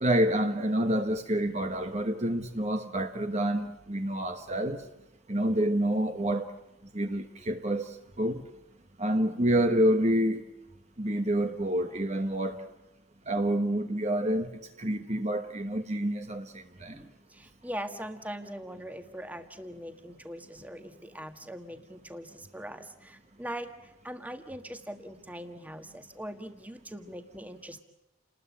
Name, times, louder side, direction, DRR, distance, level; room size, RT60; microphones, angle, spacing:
voice 1, 0.0-4.8 5.3-6.5 6.9-8.4 9.0-10.4 11.0-12.6 13.3-14.5 14.8-16.5 16.8-16.9, right 1 dB, 35° right, 1.2 m, -28 dB
voice 2, 16.9-27.8, equal, 10° right, 1.6 m, -41 dB
30.0 x 20.0 x 8.5 m
head